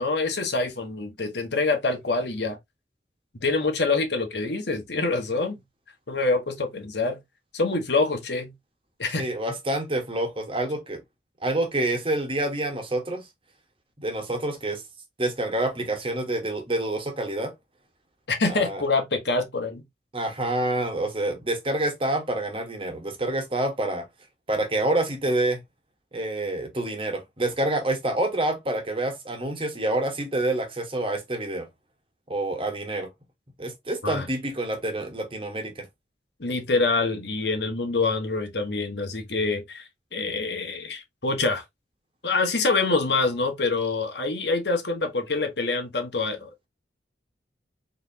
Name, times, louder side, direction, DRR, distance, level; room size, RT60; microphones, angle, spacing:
voice 1, 0.0-2.6 3.4-5.6 6.1-7.2 7.5-8.5 9.0-9.3 18.3-19.8 34.0-34.3 36.4-41.6 42.2-46.7, left 3 dB, 70° left, 1.4 m, -26 dB
voice 2, 9.2-11.0 11.4-13.3 14.0-14.8 15.2-17.5 18.5-18.8 20.1-24.1 24.5-25.6 26.1-31.7 32.3-33.1 33.6-35.9, right 1 dB, 30° right, 1.3 m, -27 dB
4.5 x 4.1 x 2.8 m
head